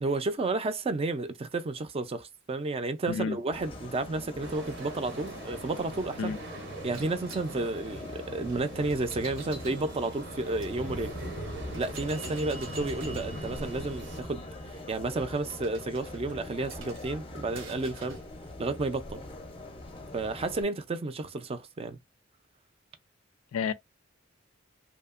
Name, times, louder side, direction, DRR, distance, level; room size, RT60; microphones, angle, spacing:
voice 1, 0.0-6.4 6.8-11.2 11.7-14.4 14.9-18.2 18.6-19.2 20.1-22.0, right 3 dB, 30° right, 0.4 m, -32 dB
voice 2, 3.1-3.4 6.2-6.4 23.5-23.7, left 6 dB, 90° left, 0.3 m, -30 dB
sound 1, 3.5-20.6, left 1 dB, 25° left, 0.5 m, -42 dB
sound 2, 4.4-14.2, right 3 dB, 60° right, 0.7 m, -45 dB
sound 3, 6.9-10.7 11.3-11.4 11.7-18.3, right 2 dB, 90° right, 1.2 m, -49 dB
2.8 x 2.3 x 2.4 m
head